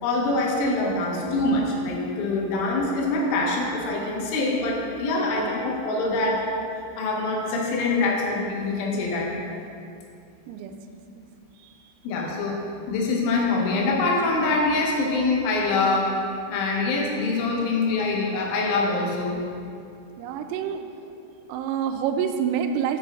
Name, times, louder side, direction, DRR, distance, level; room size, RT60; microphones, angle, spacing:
voice 1, 0.0-6.5 7.0-9.3 12.0-12.6 12.9-16.1 16.5-19.4, left 3 dB, 85° left, -1 dB, 3.5 m, -24 dB
voice 2, 5.2-5.7 10.5-10.7 11.6-11.9 20.2-20.8 21.5-23.0, right 8 dB, 90° right, 6 dB, 3.0 m, -28 dB
6.8 x 6.4 x 5.1 m, 2.5 s
omnidirectional pair, 5.4 m